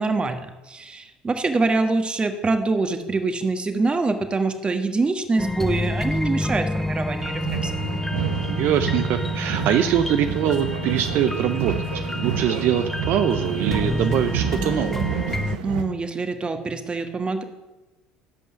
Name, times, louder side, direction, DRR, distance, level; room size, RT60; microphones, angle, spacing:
voice 1, 0.0-7.8 15.6-17.4, right 3 dB, 25° right, 7 dB, 1.4 m, -25 dB
sound 1, 5.4-15.6, left 1 dB, 5° left, 0.3 m, -28 dB
sound 2, 7.2-15.8, right 8 dB, 85° right, 1.0 m, -29 dB
voice 2, 8.5-15.1, right 10 dB, 60° right, 9 dB, 0.6 m, -23 dB
13.0 x 5.4 x 7.0 m, 1.1 s
supercardioid pair, 80°, 4 cm